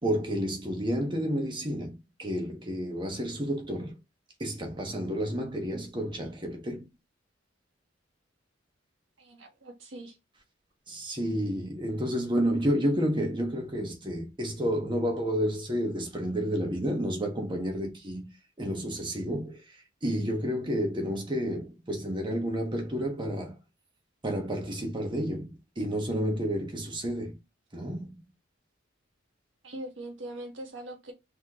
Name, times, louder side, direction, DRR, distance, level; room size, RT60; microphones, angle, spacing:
voice 1, 0.0-4.0 4.4-6.8 10.9-18.3 18.6-19.6 20.0-23.6 24.2-27.4 27.7-28.2, equal, 25° right, 1.2 m, -30 dB
voice 2, 9.2-10.2 29.6-31.1, right 1 dB, 75° right, 1.5 m, -41 dB
4.0 x 3.8 x 3.0 m
head